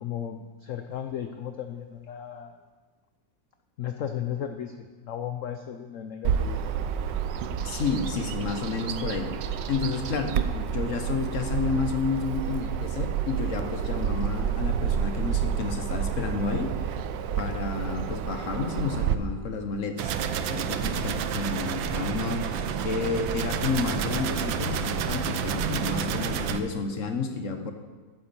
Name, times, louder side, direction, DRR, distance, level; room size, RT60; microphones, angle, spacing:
voice 1, 0.0-2.6 3.8-6.7, left 9 dB, 65° left, 7 dB, 0.8 m, -35 dB
Bird vocalization bird call bird song, 6.2-19.1, right 8 dB, 75° right, 1.3 m, -29 dB
voice 2, 7.6-16.9 17.4-20.2 20.5-27.7, left 4 dB, 50° left, 6 dB, 1.3 m, -31 dB
sound 1, 20.0-26.6, right 7 dB, 90° right, 1.5 m, -29 dB
11.0 x 9.5 x 7.1 m, 1.4 s
omnidirectional pair, 2.0 m